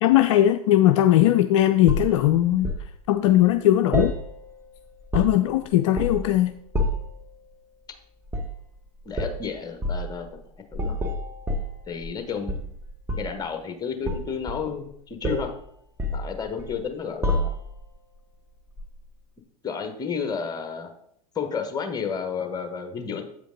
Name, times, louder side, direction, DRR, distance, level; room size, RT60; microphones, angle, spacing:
voice 1, 0.0-2.7 3.1-4.1 5.1-6.5, left 13 dB, 55° left, 8 dB, 0.4 m, -19 dB
sound 1, 1.9-2.9 3.9-4.7 4.9-5.5 6.0-6.3 6.7-7.2 8.3-8.6 9.1-9.4 9.8-10.1 10.7-12.2 12.5-13.4 14.1-14.9 15.2-15.5 16.0-16.8 17.2-17.8 18.8-18.9, equal, 15° right, 1.2 m, -28 dB
voice 2, 9.0-10.3 10.7-11.0 11.9-12.6 13.2-15.5 16.1-17.6 19.6-20.9 21.3-23.2, left 6 dB, 20° left, 6 dB, 1.2 m, -31 dB
8.1 x 5.1 x 3.9 m, 0.69 s
figure-of-eight pair, 90°, 19 cm